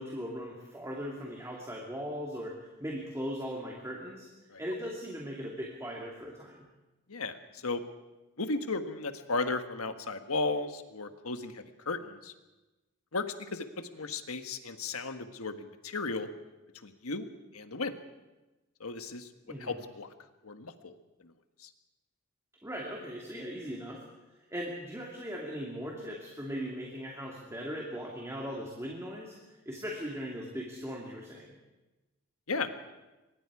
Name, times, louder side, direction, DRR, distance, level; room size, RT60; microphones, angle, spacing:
voice 1, 0.0-4.3 4.6-6.7 19.5-19.8 22.6-24.0 24.5-31.5, equal, 15° right, -2 dB, 2.4 m, -39 dB
voice 2, 7.1-7.8 8.4-12.3 13.1-16.3 16.8-17.3 17.5-17.9 18.8-19.3 19.6-20.1 20.4-20.9 21.6-21.7 32.5-32.7, left 3 dB, 85° left, 8 dB, 1.5 m, -35 dB
24.5 x 22.0 x 4.9 m, 1.1 s
head